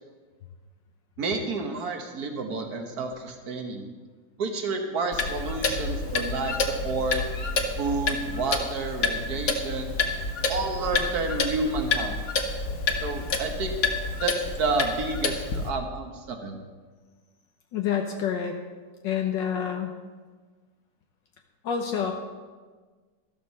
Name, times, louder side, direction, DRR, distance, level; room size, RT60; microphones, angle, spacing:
voice 1, 1.2-3.9 4.4-7.2 7.8-9.9 10.5-12.2 13.0-13.7 14.2-16.6, right 3 dB, 55° right, 4 dB, 1.8 m, -30 dB
Clock, 5.1-15.7, left 3 dB, 55° left, 1.5 m, -29 dB
voice 2, 17.7-18.6 19.0-19.9 21.6-22.1, left 8 dB, 80° left, 3 dB, 1.6 m, -27 dB
13.5 x 13.0 x 4.2 m, 1.4 s
omnidirectional pair, 2.0 m